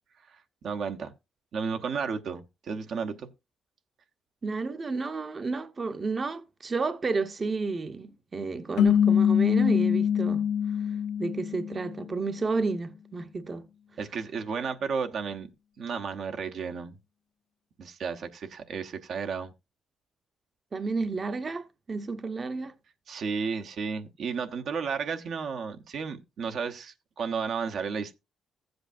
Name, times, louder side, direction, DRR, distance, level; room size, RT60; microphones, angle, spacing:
voice 1, 0.3-1.1 1.5-3.3 14.0-15.5 15.8-17.0 17.8-19.5 23.1-28.2, right 5 dB, 65° right, 0.9 m, -33 dB
voice 2, 4.4-10.4 11.2-13.7 20.7-22.7, right 4 dB, 35° right, 0.8 m, -31 dB
sound 1, 8.8-12.1, left 8 dB, 80° left, 0.6 m, -24 dB
14.5 x 7.9 x 2.6 m
cardioid pair, 90°, 0 cm